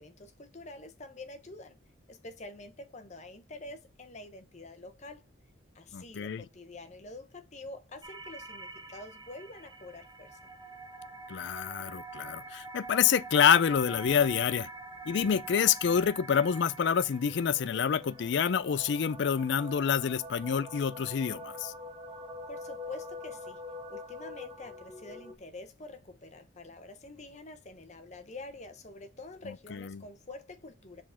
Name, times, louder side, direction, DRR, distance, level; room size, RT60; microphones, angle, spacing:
voice 1, 0.0-1.8 2.1-5.2 5.7-10.4 22.5-23.6 23.9-31.0, left 2 dB, 35° left, 0.8 m, -47 dB
voice 2, 5.9-6.4 11.3-14.7 15.1-21.7 29.7-30.0, left 7 dB, 55° left, 0.4 m, -27 dB
sound 1, 8.0-25.3, equal, 20° right, 0.7 m, -45 dB
4.9 x 3.7 x 5.6 m
head